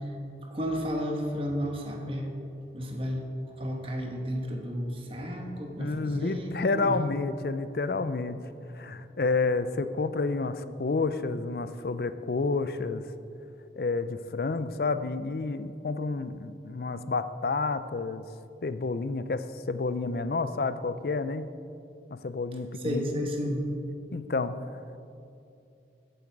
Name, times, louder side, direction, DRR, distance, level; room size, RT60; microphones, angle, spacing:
voice 1, 0.5-2.3 2.7-3.3 3.6-7.0 22.8-23.6, equal, 30° right, 1 dB, 1.4 m, -32 dB
voice 2, 5.8-8.4 8.7-13.1 13.8-18.3 18.6-21.5 22.1-23.3 24.1-24.6, left 3 dB, 55° left, 12 dB, 0.5 m, -30 dB
15.0 x 7.9 x 4.7 m, 2.6 s
head